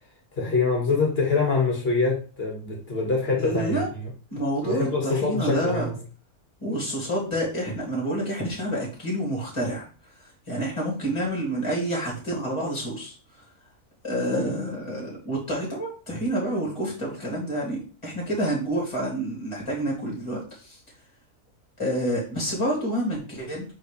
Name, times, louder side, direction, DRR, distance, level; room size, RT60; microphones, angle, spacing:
voice 1, 0.4-3.8 4.6-6.0, left 4 dB, 40° left, 2.0 m, -24 dB
voice 2, 3.4-3.9 4.3-5.9 6.6-9.9 10.2-13.4 14.0-20.8 21.8-23.7, right 1 dB, 20° left, 2.7 m, -28 dB
8.0 x 4.0 x 3.3 m
omnidirectional pair, 1.6 m